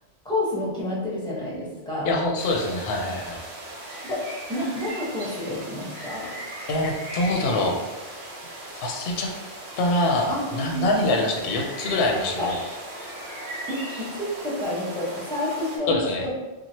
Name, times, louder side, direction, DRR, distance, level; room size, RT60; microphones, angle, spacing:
voice 1, 0.2-2.1 4.0-4.2 4.5-6.3 10.3-11.0 12.4-12.5 13.7-13.8 14.1-16.0, left 1 dB, 5° left, -7 dB, 0.8 m, -29 dB
voice 2, 2.0-3.4 6.7-7.8 8.7-9.3 9.8-12.6 15.9-16.2, left 2 dB, 70° left, 1 dB, 0.7 m, -24 dB
sound 1, 2.4-15.8, right 1 dB, 85° right, 1.0 m, -38 dB
2.9 x 2.3 x 2.7 m, 1.1 s
omnidirectional pair, 1.1 m